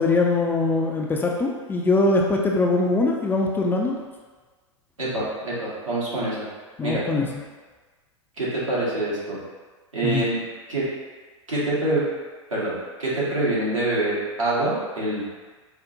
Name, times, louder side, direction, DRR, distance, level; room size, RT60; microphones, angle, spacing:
voice 1, 0.0-4.0 6.8-7.3 10.0-10.2, left 3 dB, 15° left, -1 dB, 0.3 m, -22 dB
voice 2, 5.0-6.4 6.8-7.0 8.4-9.4 9.9-10.4 10.7-10.9 11.5-12.1 12.5-12.7 13.0-15.2, right 2 dB, 90° right, -9 dB, 1.4 m, -25 dB
4.9 x 2.1 x 2.6 m, 1.4 s
figure-of-eight pair, 95°, 16 cm